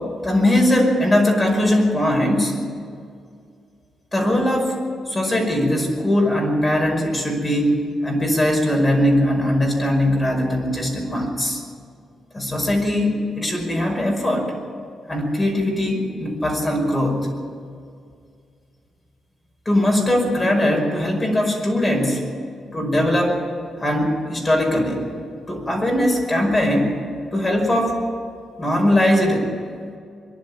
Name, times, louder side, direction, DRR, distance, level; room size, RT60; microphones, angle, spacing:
voice 1, 0.2-2.6 4.1-4.8 5.1-11.6 12.3-14.5 15.1-17.3 19.7-22.3 22.7-23.4 23.8-25.0 25.5-27.0 27.3-28.0 28.6-29.5, left 1 dB, 20° left, 0 dB, 5.4 m, -20 dB
23.0 x 11.5 x 9.9 m, 2.2 s
cardioid pair, 105°, 0 cm